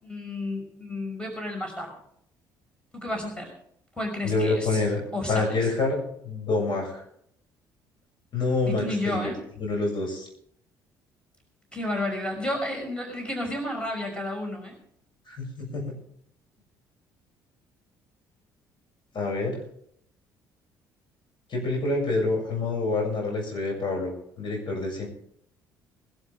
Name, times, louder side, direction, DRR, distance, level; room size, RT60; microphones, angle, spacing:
voice 1, 0.0-1.9 2.9-3.5 4.0-4.8 5.1-5.5 8.7-9.4 11.7-14.8, left 1 dB, 10° left, 2 dB, 5.8 m, -31 dB
voice 2, 4.2-7.0 8.3-9.3 9.6-10.3 15.3-16.0 19.1-19.6 21.5-24.1 24.4-25.1, left 3 dB, 50° left, 0 dB, 7.3 m, -27 dB
21.0 x 12.5 x 3.7 m, 0.67 s
hypercardioid pair, 50°, 10 cm